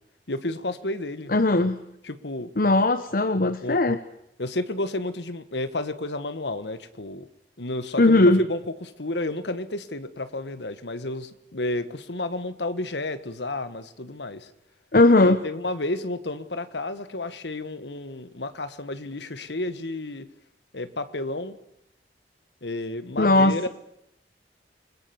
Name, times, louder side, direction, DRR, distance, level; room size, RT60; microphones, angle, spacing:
voice 1, 0.3-1.3 2.0-2.5 3.6-3.8 4.4-7.3 7.6-14.5 15.2-20.3 20.7-21.6 22.6-23.7, left 2 dB, 80° left, 12 dB, 1.6 m, -31 dB
voice 2, 1.3-1.8 2.6-4.0 8.0-8.4 14.9-15.4 23.2-23.7, left 2 dB, 50° left, 11 dB, 0.9 m, -18 dB
29.0 x 20.5 x 7.1 m, 0.78 s
head